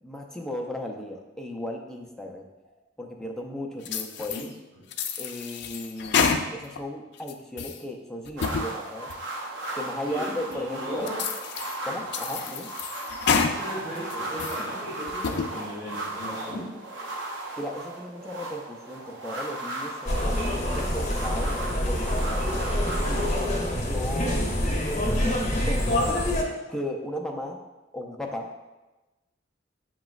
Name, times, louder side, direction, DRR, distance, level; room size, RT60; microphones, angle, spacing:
voice 1, 0.0-2.5 3.0-4.5 5.2-9.1 9.7-11.1 11.8-12.7 17.6-21.6 21.9-22.5 23.0-23.5 23.8-26.3 26.7-27.6 27.9-28.7, left 1 dB, 5° left, 1 dB, 0.4 m, -36 dB
sound 1, 3.9-4.5 4.9-6.8 7.2-7.8 8.3-8.7 9.1-9.2 9.8-9.9 10.5-10.6 11.1-11.8 12.1-13.6 14.0-14.6 15.1-15.5, left 6 dB, 65° left, 0.4 m, -28 dB
sound 2, 8.4-23.5, right 2 dB, 90° right, 0.6 m, -36 dB
voice 2, 10.1-11.2 13.4-16.6 24.1-24.5, equal, 20° right, -12 dB, 1.5 m, -37 dB
sound 3, 20.1-26.4, left 1 dB, 40° left, 0.8 m, -26 dB
7.6 x 3.0 x 2.4 m, 1.1 s
head